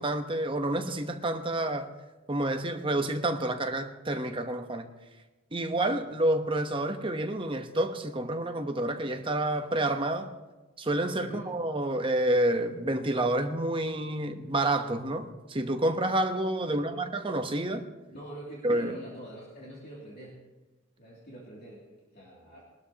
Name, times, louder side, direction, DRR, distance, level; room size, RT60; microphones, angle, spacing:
voice 1, 0.0-1.9 2.3-4.9 5.5-10.3 10.8-17.8 18.6-18.9, right 1 dB, 25° right, 6 dB, 1.0 m, -29 dB
voice 2, 16.7-17.0 18.1-20.4 21.0-22.6, right 1 dB, 50° left, -5 dB, 2.7 m, -45 dB
22.0 x 12.5 x 2.9 m, 1.2 s
head